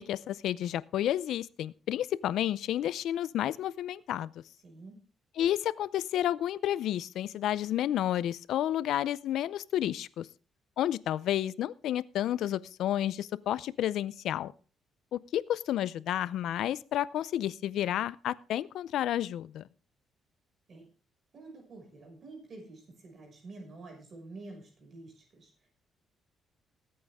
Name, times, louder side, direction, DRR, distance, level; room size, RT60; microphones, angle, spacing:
voice 1, 0.0-4.3 5.4-10.3 10.8-14.5 15.1-19.7, left 12 dB, 80° left, 19 dB, 0.5 m, -31 dB
voice 2, 4.6-5.0 20.7-20.9 21.3-25.7, right 2 dB, 50° right, 2 dB, 5.9 m, -48 dB
19.5 x 8.7 x 3.6 m, 0.37 s
cardioid pair, 90°, 0 cm